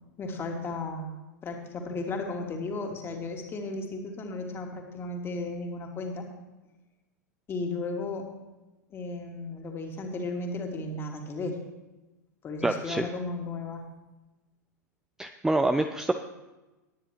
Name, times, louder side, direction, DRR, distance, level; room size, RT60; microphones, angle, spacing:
voice 1, 0.2-1.1 1.4-6.3 7.5-8.3 8.9-11.6 12.4-13.8, left 3 dB, 25° left, 2 dB, 2.3 m, -34 dB
voice 2, 12.6-13.1 15.2-16.1, right 2 dB, 5° right, 8 dB, 0.5 m, -26 dB
19.0 x 9.8 x 3.1 m, 1.1 s
figure-of-eight pair, 95°, 10 cm